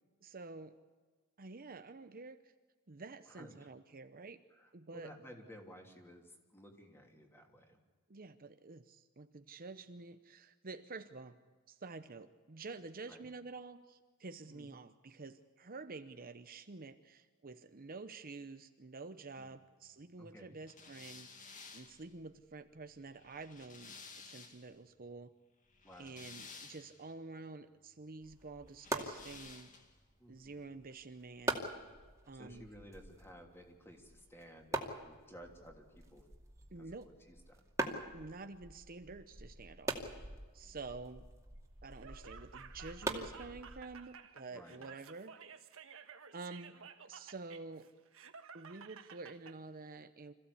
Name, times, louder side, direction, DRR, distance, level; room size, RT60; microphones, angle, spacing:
voice 1, 0.2-0.8 1.4-2.5 2.9-4.4 4.7-5.1 8.1-11.4 11.7-25.3 26.0-29.8 30.3-31.6 32.3-32.7 36.7-37.1 38.1-40.3 40.5-41.3 41.8-45.4 46.3-47.9 48.5-50.3, right 3 dB, 45° right, 9 dB, 0.8 m, -49 dB
voice 2, 3.3-3.7 4.5-7.8 13.1-13.3 14.5-14.7 19.4-19.6 20.2-20.6 25.8-26.2 30.2-30.7 32.3-36.3 36.8-37.6 40.6-40.8 44.5-44.8, equal, 10° left, 2 dB, 3.0 m, -56 dB
sound 1, 20.7-24.8 25.7-27.1 28.8-30.0, left 4 dB, 35° left, 2.3 m, -54 dB
sound 2, 28.2-44.1, right 2 dB, 15° right, 2.4 m, -44 dB
Laughter, 41.9-49.6, right 6 dB, 65° right, 1.4 m, -54 dB
26.5 x 15.5 x 8.5 m, 1.4 s
head